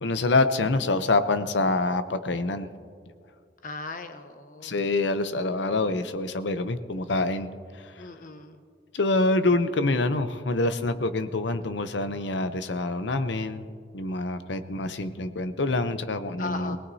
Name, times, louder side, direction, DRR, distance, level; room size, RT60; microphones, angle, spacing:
voice 1, 0.0-2.7 4.6-8.1 8.9-13.7 13.9-16.8, left 2 dB, 85° left, 11 dB, 0.7 m, -26 dB
voice 2, 3.6-4.8 8.0-8.6 16.4-16.8, left 3 dB, 50° left, 8 dB, 0.9 m, -38 dB
22.5 x 18.0 x 2.7 m, 2.2 s
head